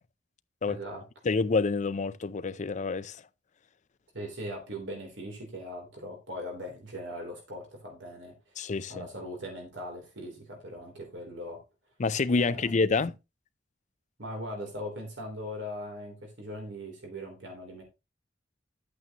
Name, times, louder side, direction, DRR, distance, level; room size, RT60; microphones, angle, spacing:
voice 1, 0.7-1.0 4.1-8.6 8.9-11.6 12.4-12.7 14.2-17.8, equal, 80° right, 3.3 m, -40 dB
voice 2, 1.2-3.2 8.6-9.0 12.0-13.1, left 4 dB, 40° left, 0.5 m, -27 dB
11.0 x 8.5 x 2.9 m
head